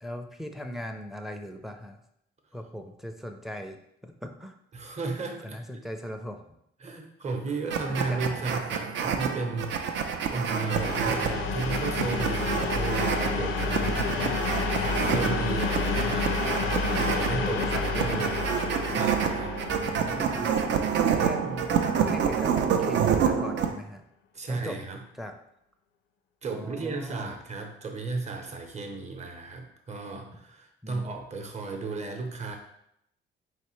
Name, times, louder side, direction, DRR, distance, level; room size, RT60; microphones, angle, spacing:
voice 1, 0.0-2.0 2.5-4.5 5.4-6.4 7.9-8.2 13.6-14.4 17.4-18.4 19.7-20.5 21.0-24.0 24.5-24.8 25.2-25.3 26.5-27.4 30.8-31.1, equal, ahead, 5 dB, 0.4 m, -39 dB
voice 2, 4.7-5.6 6.8-13.8 14.8-16.3 16.9-18.3 18.9-19.6 24.3-25.0 26.4-32.6, right 3 dB, 35° right, 4 dB, 0.8 m, -34 dB
sound 1, 7.7-23.7, right 7 dB, 65° right, 0.5 m, -28 dB
sound 2, 10.6-22.2, left 4 dB, 80° left, 0.5 m, -30 dB
4.1 x 3.3 x 3.1 m, 0.75 s
cardioid pair, 90°, 20 cm